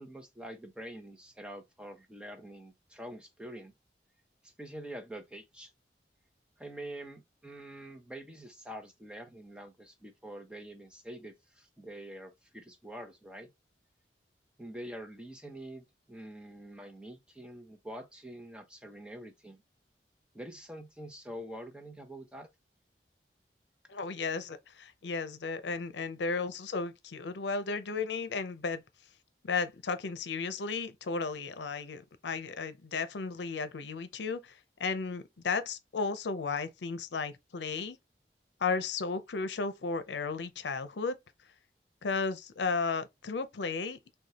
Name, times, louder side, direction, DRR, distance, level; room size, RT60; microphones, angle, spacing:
voice 1, 0.0-3.7 4.4-5.7 6.6-13.5 14.6-19.6 20.3-22.5, right 1 dB, 5° right, 0.7 m, -46 dB
voice 2, 23.9-28.8 29.4-38.0 38.6-41.2 42.0-44.0, left 4 dB, 85° left, 0.6 m, -34 dB
6.2 x 2.3 x 2.8 m
head